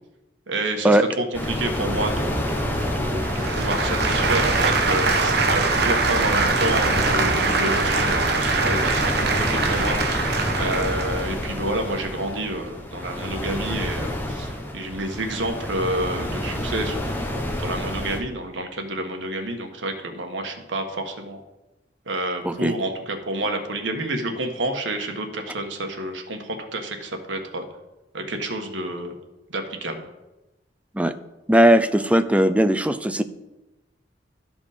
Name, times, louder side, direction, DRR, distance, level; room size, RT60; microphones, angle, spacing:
voice 1, 0.5-21.4 22.1-27.6 28.1-29.1 29.5-30.1, right 1 dB, 85° right, 4 dB, 1.4 m, -29 dB
sound 1, 1.3-18.2, left 1 dB, 10° left, 1.1 m, -27 dB
sound 2, 3.2-11.2, right 4 dB, 60° right, 1.1 m, -23 dB
voice 2, 31.5-33.2, right 1 dB, 5° right, 11 dB, 0.4 m, -18 dB
13.0 x 5.2 x 5.0 m, 1.0 s
head